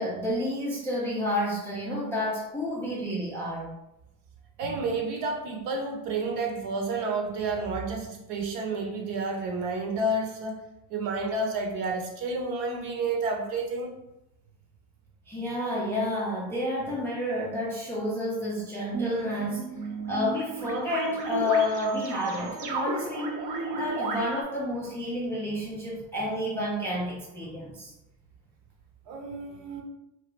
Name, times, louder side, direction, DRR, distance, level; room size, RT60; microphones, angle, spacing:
voice 1, 0.0-3.8 15.3-19.7 20.1-23.4 23.7-27.9, left 1 dB, 5° left, -6 dB, 0.3 m, -30 dB
voice 2, 4.6-10.6 10.9-13.9 29.1-29.8, right 3 dB, 60° right, 2 dB, 0.9 m, -30 dB
sound 1, 18.9-24.4, right 3 dB, 40° right, 0.6 m, -34 dB
2.9 x 2.3 x 3.2 m, 0.86 s
supercardioid pair, 120°, 48 cm